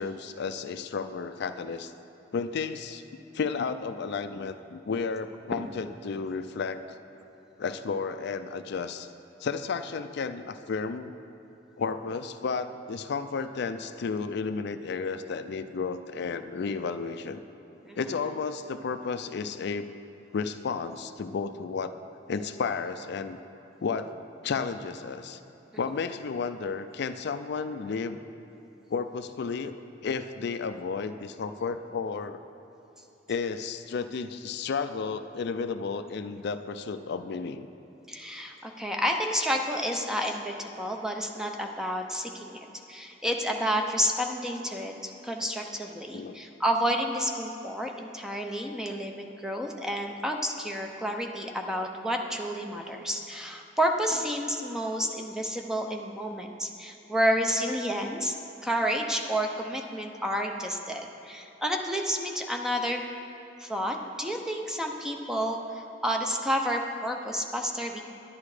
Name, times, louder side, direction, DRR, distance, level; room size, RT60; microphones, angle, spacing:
voice 1, 0.0-1.9 2.3-3.0 3.3-7.0 7.6-9.1 9.4-11.1 11.8-17.4 18.0-19.9 20.3-21.9 22.3-23.4 23.8-24.1 24.4-25.4 25.8-28.2 28.9-29.7 30.0-32.4 33.3-37.7 46.1-46.4, left 5 dB, 60° left, 10 dB, 0.4 m, -32 dB
voice 2, 38.1-58.3 58.6-63.1 63.6-68.0, equal, 5° right, 2 dB, 0.7 m, -30 dB
10.5 x 10.5 x 4.9 m, 3.0 s
head